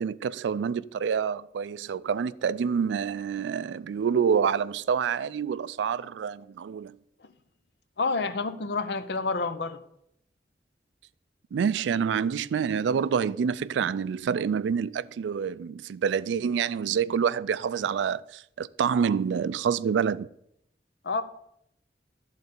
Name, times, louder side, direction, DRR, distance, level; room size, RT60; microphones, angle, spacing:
voice 1, 0.0-7.0 11.5-20.3, right 7 dB, 85° right, 0.3 m, -27 dB
voice 2, 8.0-9.8 21.0-21.2, left 4 dB, 70° left, 0.6 m, -28 dB
11.5 x 3.9 x 6.7 m
head